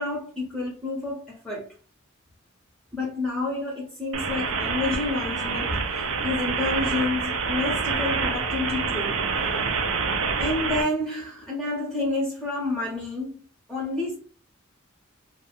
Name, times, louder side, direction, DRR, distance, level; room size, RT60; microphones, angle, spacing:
voice 1, 0.0-1.7 2.9-9.2 10.4-13.4 13.7-14.2, left 2 dB, 5° left, 0.6 m, -29 dB
sound 1, 4.1-10.8, right 5 dB, 75° right, 0.5 m, -27 dB
2.3 x 2.1 x 2.9 m
head